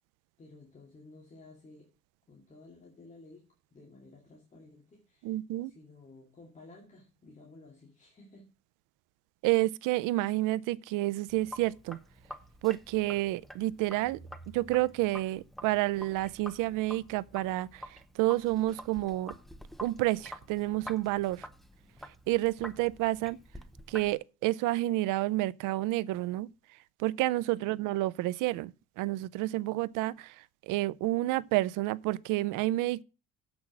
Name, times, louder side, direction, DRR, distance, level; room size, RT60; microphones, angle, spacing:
voice 1, 0.4-1.9 2.3-5.4 5.6-8.5 27.6-27.8, left 2 dB, 25° left, 2.4 m, -54 dB
voice 2, 5.2-5.7 9.4-12.0 12.6-14.2 14.5-19.3 19.8-21.5 22.3-23.4 23.9-26.5 27.0-33.0, right 17 dB, 85° right, 0.5 m, -30 dB
Sink (filling or washing), 11.3-24.2, equal, ahead, 0.6 m, -48 dB
7.5 x 6.2 x 6.0 m
cardioid pair, 145°, 31 cm